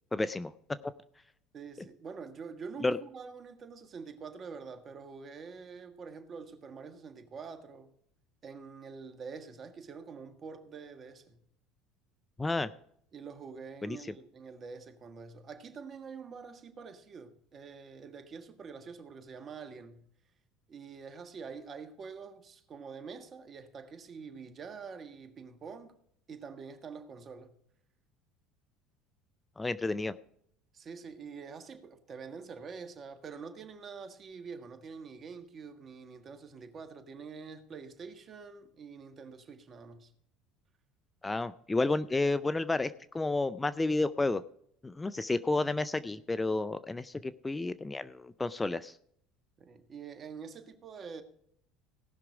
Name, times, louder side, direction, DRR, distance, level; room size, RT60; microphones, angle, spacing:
voice 1, 0.1-0.5 2.8-3.0 12.4-12.7 13.8-14.0 29.6-30.1 41.2-44.4 44.8-48.9, left 2 dB, 15° left, 0.5 m, -31 dB
voice 2, 1.5-8.0 8.4-11.4 13.1-20.1 20.7-26.0 26.3-27.6 30.7-40.1 49.6-51.2, right 5 dB, 40° right, 1.6 m, -46 dB
18.0 x 6.0 x 4.9 m
hypercardioid pair, 75°, 0 cm